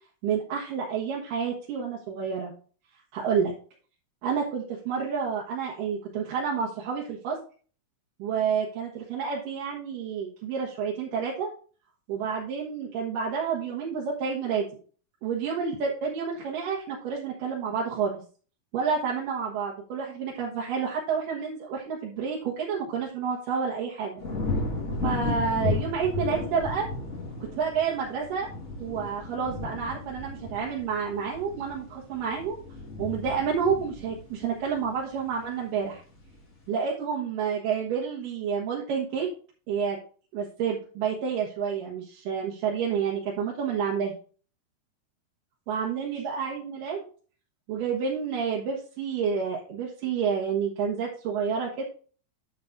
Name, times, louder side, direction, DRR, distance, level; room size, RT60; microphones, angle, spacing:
voice 1, 0.2-2.5 3.1-3.5 4.2-7.4 8.2-11.5 12.1-14.7 15.2-18.1 18.7-24.2 25.0-26.9 27.5-28.5 28.8-32.6 33.0-36.0 36.7-39.3 39.7-40.0 40.3-44.1 45.7-47.1 47.7-51.8, right 6 dB, 90° right, -3 dB, 3.0 m, -29 dB
sound 1, 24.2-35.5 35.9-36.4, left 3 dB, 30° left, 1.5 m, -34 dB
10.5 x 7.4 x 2.6 m, 0.40 s
omnidirectional pair, 3.7 m